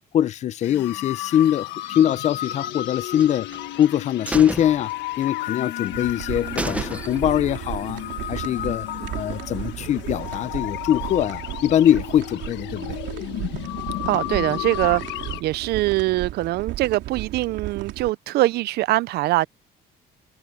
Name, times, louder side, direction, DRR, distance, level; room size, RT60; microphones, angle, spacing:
voice 1, 0.1-3.5 3.8-4.9 5.2-8.0 8.3-8.9 9.1-13.0, left 10 dB, 40° left, 0.6 m, -22 dB
sound 1, 0.6-15.4, left 15 dB, 90° left, 1.3 m, -33 dB
sound 2, 3.2-3.9 4.3-5.5 5.9-6.0 6.3-6.4 6.6-7.5 7.8-7.9, right 2 dB, 5° right, 0.7 m, -32 dB
sound 3, 5.9-18.1, right 14 dB, 90° right, 3.1 m, -35 dB
voice 2, 14.1-19.5, right 17 dB, 65° right, 0.4 m, -23 dB
cardioid pair, 165°, 18 cm